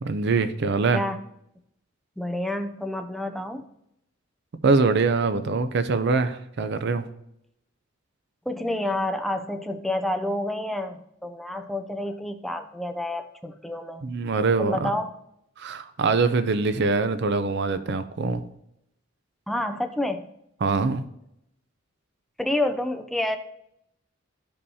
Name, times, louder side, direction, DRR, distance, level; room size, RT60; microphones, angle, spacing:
voice 1, 0.0-1.0 4.6-7.0 14.0-14.9 15.6-18.4 20.6-21.0, right 4 dB, 55° right, 11 dB, 0.5 m, -23 dB
voice 2, 2.2-3.7 8.5-14.2 14.6-15.1 19.5-20.3 22.4-23.4, left 1 dB, ahead, 6 dB, 0.4 m, -29 dB
13.5 x 5.4 x 2.8 m, 0.79 s
head